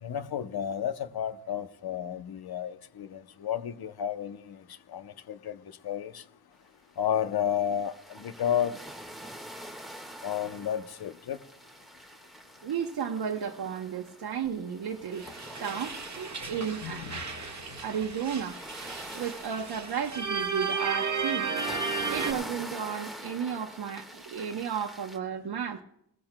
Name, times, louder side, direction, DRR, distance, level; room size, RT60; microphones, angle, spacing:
voice 1, 0.0-4.6 4.9-6.2 7.0-8.8 10.2-11.4 16.8-17.8, left 9 dB, 75° left, 0.8 m, -32 dB
sound 1, 6.9-7.0 7.4-25.2, equal, ahead, 1.6 m, -45 dB
voice 2, 12.6-17.2 17.8-18.6 19.1-21.5 22.1-25.8, right 7 dB, 80° right, 0.9 m, -33 dB
sound 2, 15.1-22.3, right 5 dB, 45° right, 1.5 m, -34 dB
19.0 x 14.5 x 2.2 m
cardioid pair, 85°, 37 cm